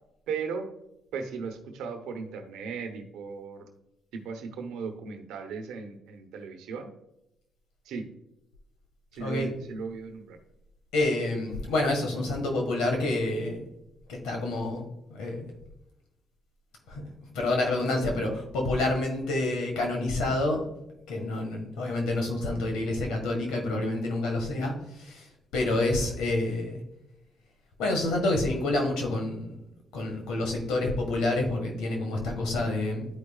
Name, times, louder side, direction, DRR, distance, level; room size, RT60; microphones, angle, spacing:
voice 1, 0.3-0.7 1.1-3.8 4.1-6.9 7.8-8.1 9.1-10.4, right 5 dB, 85° right, 5 dB, 1.0 m, -36 dB
voice 2, 9.2-9.5 10.9-13.7 14.1-15.5 16.9-17.0 17.3-20.6 21.1-26.8 27.8-29.7 29.9-33.1, left 2 dB, 85° left, 2 dB, 1.7 m, -28 dB
11.5 x 4.9 x 2.4 m, 0.87 s
supercardioid pair, 70°, 0 cm